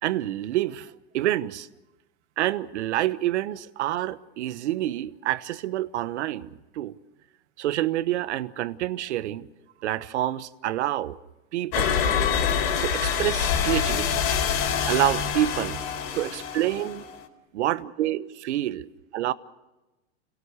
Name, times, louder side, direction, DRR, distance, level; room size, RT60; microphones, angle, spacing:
voice 1, 0.0-1.7 2.4-6.5 6.7-7.0 7.6-9.5 9.8-11.2 11.5-12.0 12.8-14.3 14.8-15.8 16.2-17.0 17.5-18.8 19.1-19.3, right 13 dB, 75° right, 1.2 m, -27 dB
sound 1, 11.7-17.2, left 7 dB, 55° left, 4.4 m, -26 dB
30.0 x 18.0 x 6.7 m
supercardioid pair, 140°, 34 cm